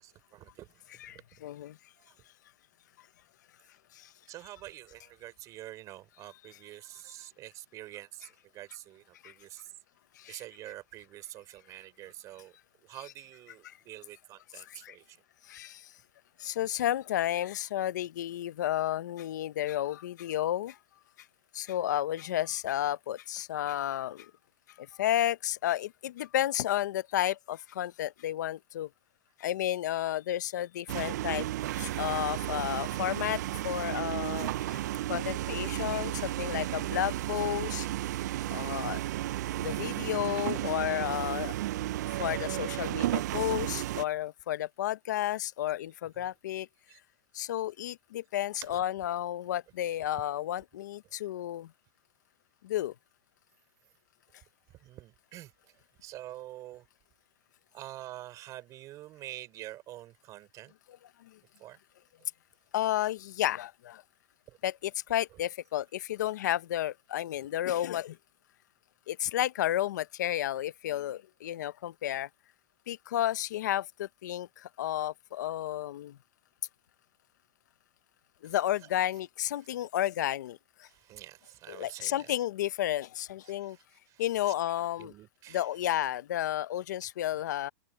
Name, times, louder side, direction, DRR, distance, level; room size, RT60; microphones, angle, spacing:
voice 1, 0.0-1.2 2.0-2.2 4.3-9.7 10.3-12.5 12.8-15.2 41.8-42.2 46.2-46.3 46.9-47.0 48.6-48.8 54.8-55.5 56.0-56.9 57.7-60.7 61.6-61.8 64.5-64.6 78.4-78.6 80.9-82.3 83.4-84.2 85.0-85.7 87.3-87.4, right 15 dB, 35° right, 4.5 m, -47 dB
voice 2, 1.0-1.8 3.9-4.1 9.2-9.3 10.2-10.4 13.6-13.8 14.6-15.0 15.5-15.9 16.4-20.8 21.5-24.3 24.8-28.9 29.4-31.5 31.8-34.8 35.1-37.9 38.5-39.0 39.6-41.5 42.2-46.7 47.3-51.7 52.6-52.9 61.2-61.4 62.7-64.0 64.6-68.2 69.1-72.3 72.9-76.2 78.4-80.9 81.7-83.8 84.2-85.1 85.5-87.7, left 12 dB, 85° left, 0.7 m, -32 dB
sound 1, 30.9-44.0, right 14 dB, 75° right, 0.4 m, -33 dB
open air
supercardioid pair, 140°, 9 cm